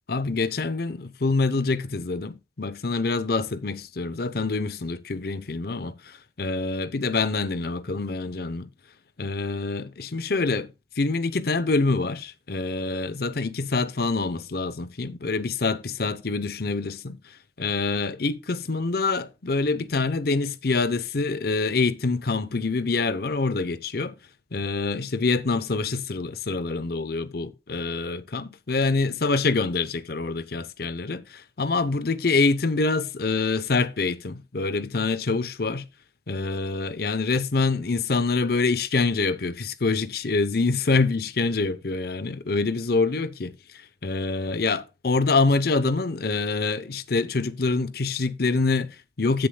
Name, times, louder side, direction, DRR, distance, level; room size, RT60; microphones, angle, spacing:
voice 1, 0.1-8.7 9.2-24.1 24.5-35.9 36.3-49.5, left 3 dB, 55° left, 0.7 m, -26 dB
16.0 x 6.7 x 2.2 m
head